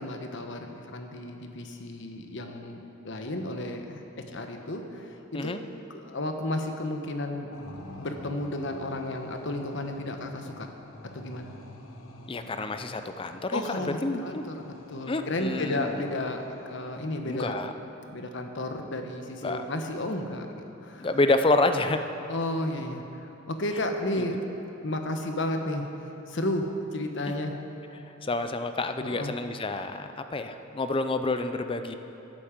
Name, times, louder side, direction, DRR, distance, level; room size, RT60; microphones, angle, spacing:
voice 1, 0.0-2.8 3.0-5.5 5.9-7.5 8.0-10.7 11.1-11.6 13.5-17.6 18.1-21.1 22.3-24.4 24.8-25.9 26.3-27.6 29.0-29.3, left 1 dB, 65° left, 5 dB, 1.1 m, -33 dB
sound 1, 7.5-17.4, left 2 dB, 85° left, 1.1 m, -47 dB
voice 2, 12.3-14.4 15.1-15.9 17.2-17.7 19.4-19.6 21.0-22.1 27.3-27.4 28.1-32.0, left 2 dB, 25° left, 8 dB, 0.5 m, -28 dB
10.5 x 8.6 x 7.4 m, 3.0 s
head